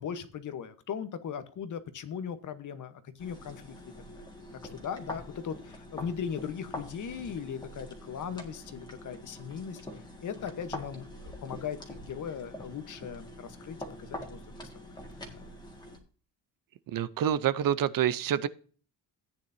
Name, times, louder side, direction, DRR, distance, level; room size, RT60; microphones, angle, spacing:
voice 1, 0.0-3.7 4.7-9.8 10.2-14.6 15.3-15.4, left 7 dB, 50° left, 11 dB, 1.1 m, -38 dB
sound 1, 3.2-16.0, left 1 dB, 10° left, 1.9 m, -45 dB
voice 2, 16.9-18.5, right 10 dB, 55° right, 16 dB, 0.6 m, -27 dB
14.5 x 9.3 x 2.7 m, 0.41 s
cardioid pair, 150°, 40 cm